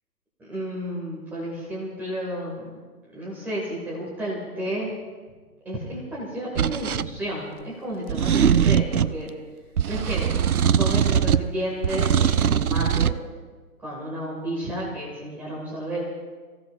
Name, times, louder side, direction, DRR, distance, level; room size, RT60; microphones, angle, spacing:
voice 1, 0.4-2.7 3.1-4.9 5.6-9.3 9.9-10.3 10.7-13.1 13.8-16.0, right 1 dB, 5° right, -6 dB, 2.1 m, -32 dB
sound 1, 6.6-7.1 8.1-9.2 9.8-11.5 11.8-13.2, right 8 dB, 65° right, 0.5 m, -21 dB
27.0 x 15.5 x 2.5 m, 1.4 s
figure-of-eight pair, 145°, 48 cm